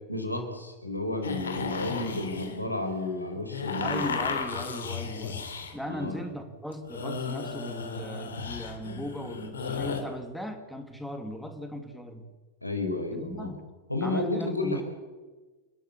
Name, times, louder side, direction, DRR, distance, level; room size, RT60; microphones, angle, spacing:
voice 1, 0.1-4.2 5.8-6.2 12.6-13.5 13.9-14.8, left 2 dB, 85° left, 4 dB, 4.5 m, -31 dB
sound 1, 1.2-5.8 6.7-10.0, left 5 dB, 70° left, 3.0 m, -35 dB
voice 2, 3.8-12.3 13.1-13.6 14.0-14.8, equal, ahead, 5 dB, 2.6 m, -38 dB
28.5 x 13.5 x 8.6 m, 1.3 s
figure-of-eight pair, 90°, 0 cm